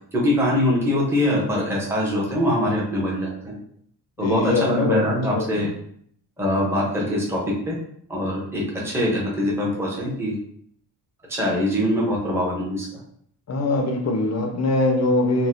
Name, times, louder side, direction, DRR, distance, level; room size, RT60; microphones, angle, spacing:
voice 1, 0.1-3.6 4.2-5.7 6.4-7.4 7.7-7.8 8.1-10.4 11.3-12.9, left 1 dB, 5° right, -4 dB, 0.6 m, -23 dB
voice 2, 4.2-5.7 13.5-15.5, left 2 dB, 40° left, 4 dB, 0.4 m, -23 dB
4.0 x 2.1 x 2.5 m, 0.66 s
wide cardioid pair, 145°, 45 cm